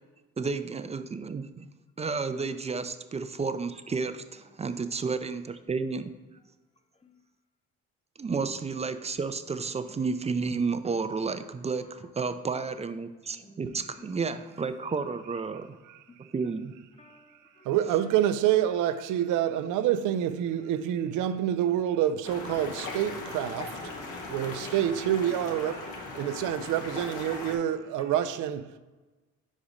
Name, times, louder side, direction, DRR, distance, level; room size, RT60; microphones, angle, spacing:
voice 1, 0.4-1.7 2.0-6.1 8.2-15.8 16.3-16.8, right 4 dB, 20° right, 0.4 m, -31 dB
voice 2, 13.4-14.2 15.0-15.1 16.1-16.2 17.0-17.7 20.0-20.2 21.6-21.9 22.6-22.8 25.3-25.5 25.8-26.6 26.9-28.2 28.7-28.8, left 3 dB, 20° left, 0.7 m, -55 dB
voice 3, 17.6-23.8 24.3-28.8, right 11 dB, 90° right, 0.5 m, -27 dB
sound 1, 22.2-27.6, left 3 dB, 85° left, 1.2 m, -39 dB
4.9 x 4.2 x 5.0 m
cardioid pair, 90°, 30 cm